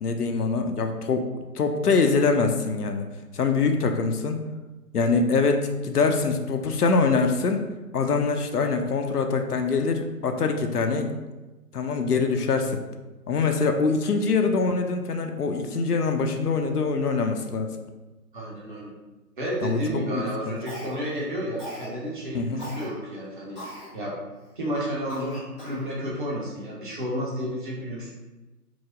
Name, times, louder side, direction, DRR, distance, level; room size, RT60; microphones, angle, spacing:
voice 1, 0.0-1.3 1.5-3.1 3.3-4.4 4.9-7.7 7.9-11.1 11.7-12.8 13.3-17.7 19.6-19.8 20.1-20.5 22.3-22.6, left 4 dB, 75° left, 5 dB, 0.6 m, -24 dB
voice 2, 18.3-18.9 19.4-23.6 23.9-24.2 24.6-28.1, equal, 30° right, -4 dB, 0.9 m, -31 dB
Cough, 20.7-21.2 21.6-21.9 22.6-22.9 23.6-23.9 24.4-24.5 25.1-25.9, equal, ahead, 0.7 m, -39 dB
4.7 x 2.0 x 3.8 m, 1.1 s
figure-of-eight pair, 140°, 47 cm